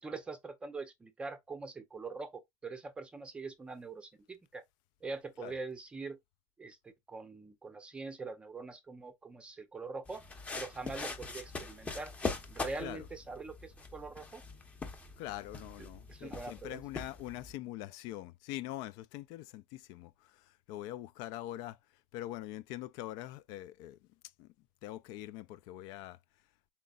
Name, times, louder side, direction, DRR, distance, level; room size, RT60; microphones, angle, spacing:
voice 1, 0.0-4.6 5.0-6.2 6.6-10.2 10.6-12.1 12.5-14.4 16.1-16.8, right 3 dB, 15° right, 0.5 m, -43 dB
sound 1, 10.1-17.5, left 3 dB, 15° left, 0.9 m, -42 dB
voice 2, 15.2-21.8 22.1-24.0 24.4-24.5 24.8-26.2, left 14 dB, 65° left, 0.4 m, -43 dB
5.2 x 4.3 x 2.3 m
cardioid pair, 150°, 7 cm